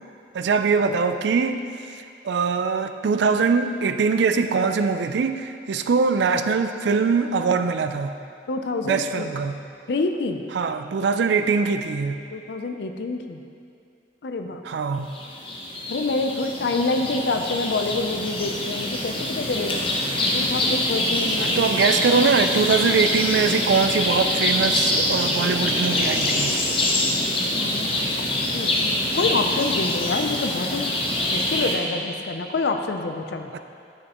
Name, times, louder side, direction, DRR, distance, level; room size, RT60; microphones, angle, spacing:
voice 1, 0.3-1.6 1.9-8.2 8.8-9.6 10.5-12.2 14.6-15.1 21.4-26.6 33.5-33.6, right 5 dB, 70° right, 8 dB, 0.3 m, -22 dB
voice 2, 8.5-9.3 9.9-10.4 12.3-13.4 14.2-14.6 15.9-19.8 20.3-21.7 27.5-30.9 31.3-33.5, left 3 dB, 65° left, 6 dB, 0.5 m, -27 dB
sound 1, 15.1-31.7, left 1 dB, 30° left, 0.8 m, -24 dB
9.2 x 6.4 x 2.9 m, 2.4 s
head